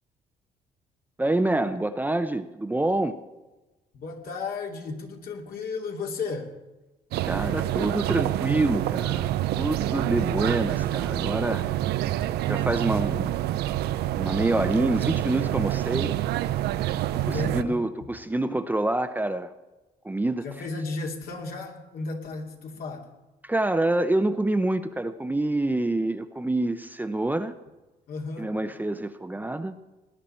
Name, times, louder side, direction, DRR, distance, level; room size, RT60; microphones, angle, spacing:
voice 1, 1.2-3.1 7.3-11.7 12.5-13.4 14.1-16.1 17.1-19.5 20.0-20.4 23.4-27.5 28.4-29.7, right 2 dB, 10° right, 9 dB, 0.7 m, -26 dB
voice 2, 3.9-6.5 17.2-17.8 20.4-23.1 28.1-28.5, left 4 dB, 65° left, 2 dB, 2.5 m, -34 dB
sound 1, 7.1-17.6, right 13 dB, 85° right, 0.6 m, -27 dB
19.0 x 10.5 x 4.4 m, 1.1 s
cardioid pair, 105°, 16 cm